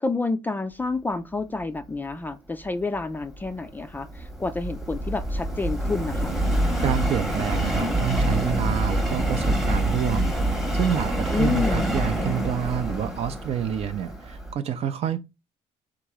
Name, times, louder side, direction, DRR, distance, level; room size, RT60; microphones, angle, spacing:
voice 1, 0.0-6.3 11.3-11.9, left 3 dB, 15° left, 0.3 m, -29 dB
Subway metro underground, 3.2-14.5, right 1 dB, ahead, 0.9 m, -26 dB
voice 2, 6.8-15.2, right 9 dB, 55° right, 0.5 m, -28 dB
3.6 x 2.9 x 4.7 m
cardioid pair, 130°, 13 cm